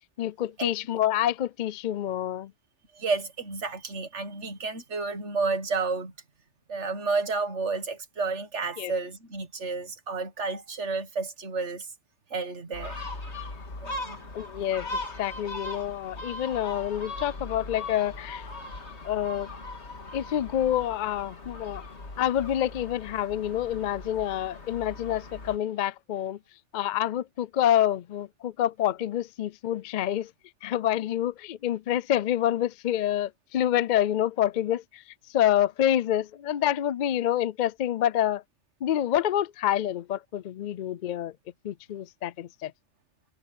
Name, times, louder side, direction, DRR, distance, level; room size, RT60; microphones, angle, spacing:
voice 1, 0.2-2.5 8.8-8.9 14.3-14.9 15.2-18.4 19.0-19.5 20.1-21.8 22.2-26.4 26.7-30.3 30.6-35.0 35.3-38.4 38.8-41.3 41.6-42.7, left 11 dB, 55° left, 0.5 m, -27 dB
voice 2, 2.9-6.1 6.7-11.9 12.3-13.0 13.8-14.3 15.4-15.6, right 4 dB, 85° right, 2.0 m, -31 dB
Gull seagull, 12.7-25.6, left 2 dB, 75° left, 2.7 m, -39 dB
omnidirectional pair, 1.2 m